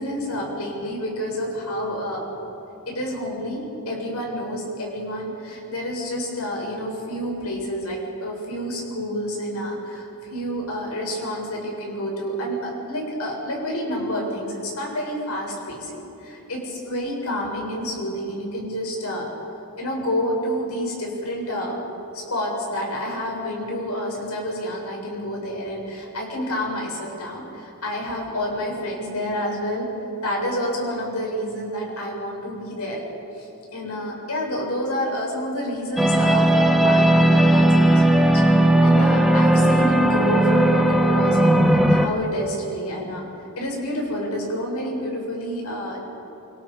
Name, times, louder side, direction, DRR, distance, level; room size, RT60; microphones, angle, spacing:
voice 1, 0.0-2.3 2.9-15.9 16.2-19.3 19.8-21.8 22.1-29.9 30.2-33.0 33.4-43.3 43.6-46.0, equal, 90° left, -2 dB, 7.2 m, -29 dB
sound 1, 36.0-42.1, right 1 dB, ahead, 1.3 m, -17 dB
28.0 x 26.5 x 5.1 m, 3.0 s
head